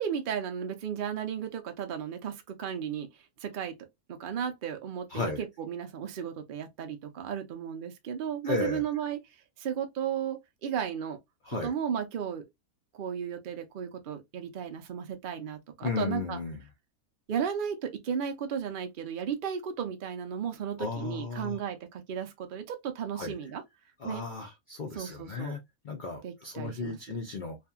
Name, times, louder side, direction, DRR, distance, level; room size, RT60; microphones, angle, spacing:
voice 1, 0.0-3.1 3.4-3.7 4.1-9.2 9.6-11.2 11.6-12.4 12.9-16.4 17.3-23.6 24.0-24.2 24.9-25.6 26.2-27.0, right 8 dB, 65° right, 0.5 m, -34 dB
voice 2, 5.1-5.4 8.4-8.8 11.4-11.7 15.8-16.6 20.8-21.6 23.1-23.3 24.0-25.6 25.8-27.6, left 3 dB, 55° left, 0.5 m, -34 dB
2.7 x 2.4 x 2.2 m
omnidirectional pair, 1.5 m